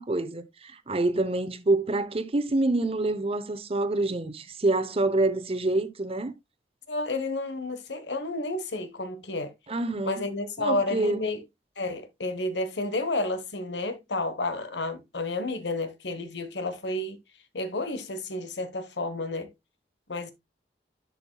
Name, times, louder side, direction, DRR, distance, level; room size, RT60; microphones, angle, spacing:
voice 1, 0.0-6.3 9.7-10.2 10.6-11.2, right 2 dB, 35° right, 0.8 m, -27 dB
voice 2, 6.9-9.5 10.0-11.4 11.8-17.2 17.5-19.5 20.1-20.3, left 2 dB, 85° left, 1.2 m, -31 dB
11.0 x 5.8 x 2.2 m
head